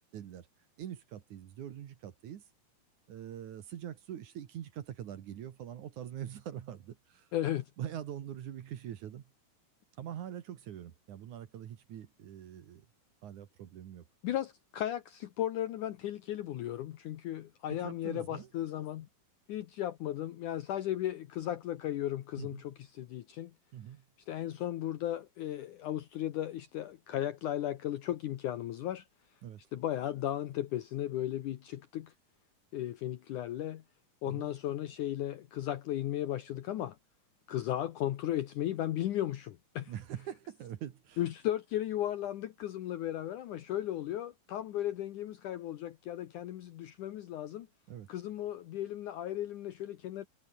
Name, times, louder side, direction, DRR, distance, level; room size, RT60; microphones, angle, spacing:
voice 1, 0.1-0.5 0.8-2.4 3.1-7.3 7.8-9.2 10.0-12.9 13.2-14.0 17.8-18.5 22.4-22.6 23.7-24.0 29.4-29.6 34.2-34.5 39.9-41.2 47.9-48.1, right 10 dB, 60° right, 2.7 m, -43 dB
voice 2, 7.3-7.7 14.2-19.1 19.5-23.5 24.3-29.1 29.7-32.1 32.7-33.8 34.2-37.0 37.5-39.9 41.2-47.7 48.1-50.3, left 12 dB, 65° left, 2.3 m, -35 dB
omnidirectional pair, 4.2 m